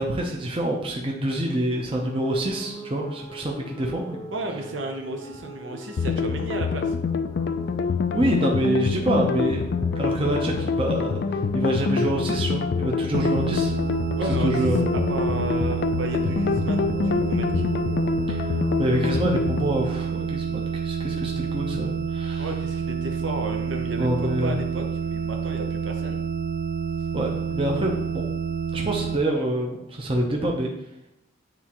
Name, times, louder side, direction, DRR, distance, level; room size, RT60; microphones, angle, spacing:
voice 1, 0.0-4.2 8.1-9.6 10.0-13.7 14.4-14.9 18.3-22.5 24.0-24.6 27.1-28.3 28.7-30.7, right 1 dB, 25° right, 0 dB, 0.7 m, -26 dB
sound 1, 2.0-19.1, right 2 dB, 15° left, 0.7 m, -41 dB
voice 2, 4.3-6.9 14.2-17.7 22.4-26.2, right 2 dB, 70° right, 3 dB, 0.8 m, -33 dB
sound 2, 6.0-19.7, left 5 dB, 55° left, 0.3 m, -26 dB
sound 3, 13.1-29.2, right 6 dB, 45° right, 0.3 m, -29 dB
9.2 x 3.7 x 3.0 m, 0.81 s
head